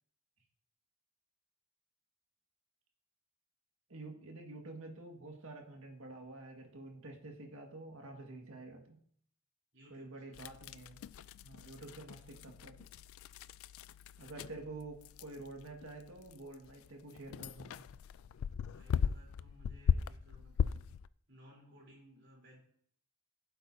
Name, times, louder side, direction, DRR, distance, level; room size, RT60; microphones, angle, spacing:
voice 1, 3.9-9.0 9.9-11.0 11.4-12.9 14.2-17.8, right 2 dB, 75° right, 2 dB, 1.8 m, -49 dB
voice 2, 9.7-10.4 14.2-14.4 18.6-20.8 21.3-22.6, equal, 55° right, -3 dB, 3.6 m, -60 dB
sound 1, 10.3-21.1, left 7 dB, 80° left, 0.3 m, -39 dB
15.5 x 7.7 x 2.7 m, 0.63 s
head